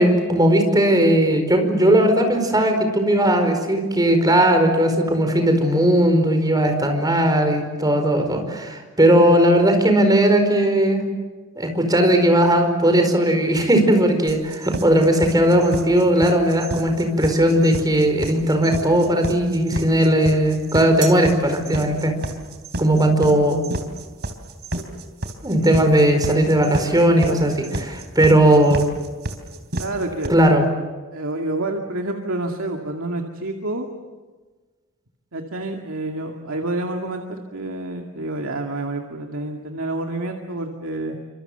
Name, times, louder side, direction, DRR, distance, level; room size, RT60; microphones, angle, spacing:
voice 1, 0.0-11.1 11.5-22.1 22.8-23.6 25.4-28.8 30.3-30.6, right 1 dB, 20° right, 5 dB, 4.9 m, -17 dB
sound 1, 14.3-30.3, right 1 dB, 55° right, 3.4 m, -30 dB
voice 2, 29.8-30.3 31.1-33.9 35.3-41.2, right 2 dB, 85° right, 3 dB, 2.3 m, -28 dB
28.5 x 26.0 x 8.0 m, 1.3 s
head